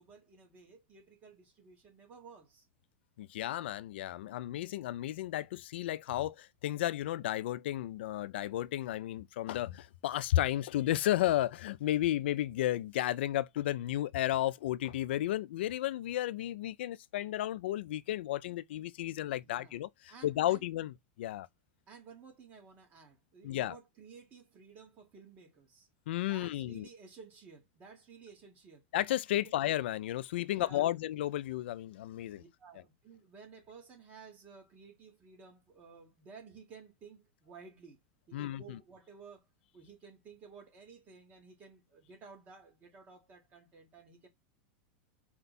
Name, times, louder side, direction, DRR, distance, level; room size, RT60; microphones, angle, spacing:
voice 1, 0.0-2.7 19.4-19.8 20.1-20.6 21.9-25.9 26.2-28.8 29.4-29.5 30.5-30.9 32.3-38.0 38.3-39.4 39.7-44.3, right 5 dB, 30° right, 1.2 m, -54 dB
voice 2, 3.2-21.5 23.4-23.8 26.1-26.9 28.9-32.4 38.3-38.8, left 13 dB, 80° left, 0.3 m, -33 dB
4.4 x 2.2 x 4.0 m
supercardioid pair, 150°, 6 cm